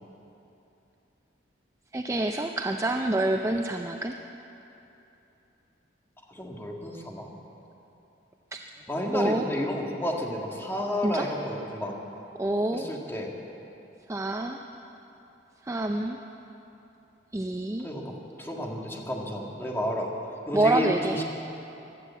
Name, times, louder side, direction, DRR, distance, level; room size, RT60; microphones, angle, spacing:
voice 1, 1.9-4.1 9.1-9.5 11.0-11.3 12.4-12.9 14.1-14.6 15.7-16.2 17.3-17.9 20.5-21.2, right 2 dB, 15° right, 4 dB, 0.4 m, -27 dB
voice 2, 6.3-7.3 8.9-11.9 12.7-13.3 17.8-20.1 20.5-21.2, equal, 10° left, -1 dB, 1.7 m, -31 dB
15.5 x 11.5 x 8.4 m, 3.0 s
head